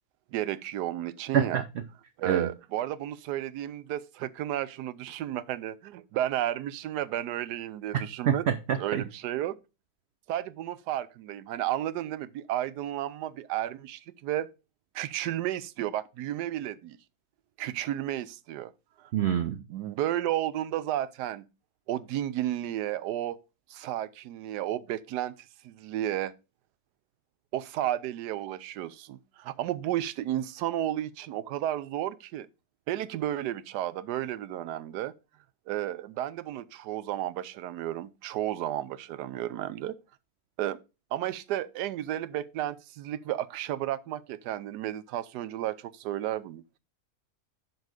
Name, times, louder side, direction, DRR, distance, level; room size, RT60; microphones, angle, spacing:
voice 1, 0.3-1.6 2.2-8.5 8.8-9.6 10.3-14.5 14.9-17.0 17.6-18.7 19.0-19.1 19.7-21.4 21.9-23.4 23.7-25.3 25.6-26.3 27.5-32.5 32.9-35.1 35.7-40.0 40.6-40.8 41.1-46.6, right 12 dB, 90° right, 1.2 m, -32 dB
voice 2, 7.9-9.0 19.1-19.6, right 9 dB, 65° right, 0.6 m, -26 dB
7.8 x 4.9 x 4.9 m
omnidirectional pair, 1.7 m